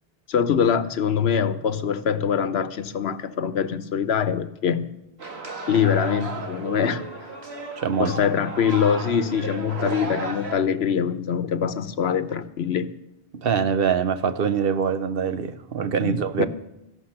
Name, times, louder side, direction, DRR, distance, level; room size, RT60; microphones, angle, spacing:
voice 1, 0.3-4.9 5.7-7.0 8.0-12.9 16.0-16.5, left 7 dB, 85° left, 13 dB, 1.1 m, -23 dB
sound 1, 5.2-10.6, right 3 dB, 85° right, 1.9 m, -34 dB
voice 2, 7.8-8.1 13.3-16.5, right 7 dB, 65° right, 11 dB, 1.0 m, -24 dB
14.0 x 11.5 x 6.6 m, 0.88 s
omnidirectional pair, 1.0 m